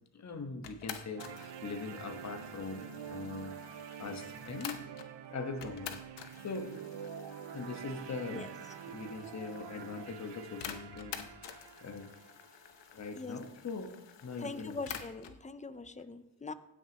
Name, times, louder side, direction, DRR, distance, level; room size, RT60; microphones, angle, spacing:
voice 1, 0.1-3.6 4.0-4.8 5.3-6.0 6.4-6.8 7.5-8.5 8.9-12.1 12.9-14.8, left 4 dB, 35° left, 5 dB, 1.3 m, -41 dB
sound 1, 0.6-5.1 5.6-15.4, left 9 dB, 70° left, 0.9 m, -49 dB
sound 2, 1.2-13.2, right 8 dB, 65° right, 0.8 m, -47 dB
voice 2, 14.4-16.5, left 3 dB, 15° left, 13 dB, 0.6 m, -42 dB
16.5 x 6.4 x 3.0 m, 0.90 s
cardioid pair, 70°, 45 cm